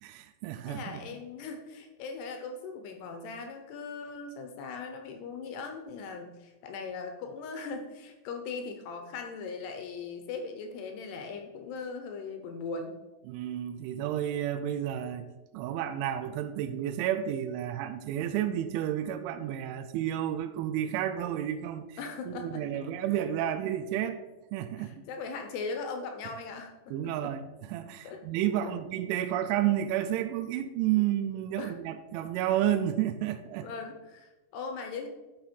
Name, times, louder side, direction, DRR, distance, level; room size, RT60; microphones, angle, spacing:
voice 1, 0.0-1.0 13.3-22.0 22.3-24.2 24.5-24.9 26.9-33.7, right 11 dB, 90° right, 9 dB, 3.0 m, -31 dB
voice 2, 0.7-13.0 22.0-22.6 24.8-27.3 28.0-28.2 28.6-28.7 31.6-31.8 33.6-35.1, left 4 dB, 75° left, 5 dB, 2.6 m, -39 dB
11.5 x 5.7 x 4.4 m, 1.1 s
omnidirectional pair, 5.3 m